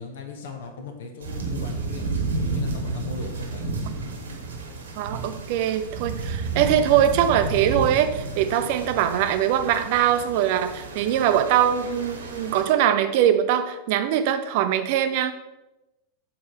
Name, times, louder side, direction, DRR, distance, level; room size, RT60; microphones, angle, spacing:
voice 1, 0.0-2.0 2.5-3.7, left 4 dB, 60° left, 4 dB, 0.8 m, -38 dB
sound 1, 1.2-12.6, right 3 dB, 65° right, 1.1 m, -31 dB
voice 2, 5.0-15.3, right 10 dB, 50° right, 9 dB, 0.5 m, -22 dB
7.4 x 4.4 x 3.7 m, 0.99 s
figure-of-eight pair, 90°, 0 cm